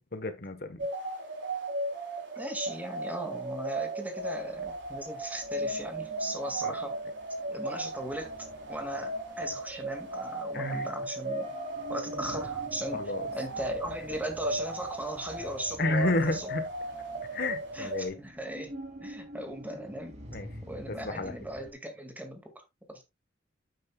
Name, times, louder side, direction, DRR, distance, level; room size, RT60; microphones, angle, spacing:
voice 1, 0.1-0.9 6.6-6.7 10.5-10.9 12.9-13.3 15.8-16.7 17.3-18.2 20.3-20.5 20.9-21.3, left 2 dB, 50° left, 1.2 m, -31 dB
sound 1, 0.8-18.1, right 2 dB, 65° right, 3.6 m, -36 dB
voice 2, 2.4-7.0 7.5-8.3 8.7-11.5 11.9-16.5 17.7-20.2 20.7-22.6 22.9-23.0, right 1 dB, 10° right, 2.0 m, -38 dB
sound 2, 4.2-21.7, left 1 dB, 35° right, 2.9 m, -47 dB
9.6 x 9.0 x 2.3 m
head